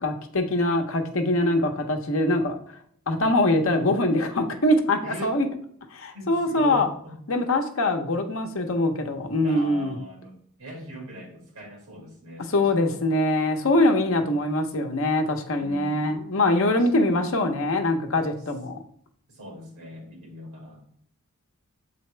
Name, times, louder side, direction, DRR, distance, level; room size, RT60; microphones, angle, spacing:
voice 1, 0.0-2.6 3.1-5.5 5.9-6.9 7.3-9.9 12.5-18.8, left 1 dB, 60° left, 4 dB, 0.8 m, -23 dB
voice 2, 5.0-5.3 6.1-7.2 9.4-13.0 15.6-16.3 16.7-17.3 19.3-20.8, right 1 dB, 75° right, -1 dB, 2.3 m, -41 dB
7.1 x 4.1 x 3.2 m, 0.62 s
head